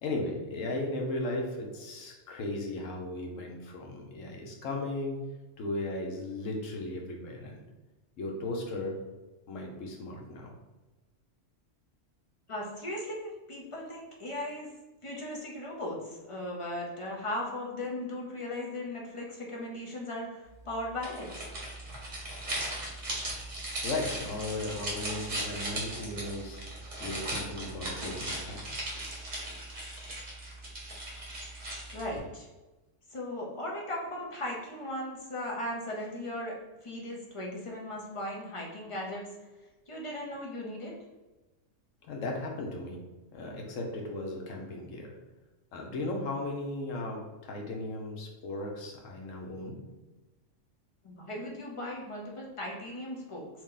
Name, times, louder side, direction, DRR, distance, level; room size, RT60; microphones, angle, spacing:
voice 1, 0.0-5.2 5.6-7.6 8.2-9.0 9.5-10.5 23.8-26.6 27.0-29.0 42.1-43.0 43.3-45.1 45.7-49.8, left 2 dB, 75° left, 1 dB, 1.1 m, -36 dB
voice 2, 12.5-14.7 15.0-21.5 31.9-32.5 33.1-39.3 39.9-40.9 51.0-53.5, left 1 dB, 35° left, -2 dB, 0.5 m, -37 dB
sound 1, 21.0-32.2, right 1 dB, 35° right, 1.0 m, -37 dB
2.9 x 2.8 x 3.7 m, 1.1 s
omnidirectional pair, 1.3 m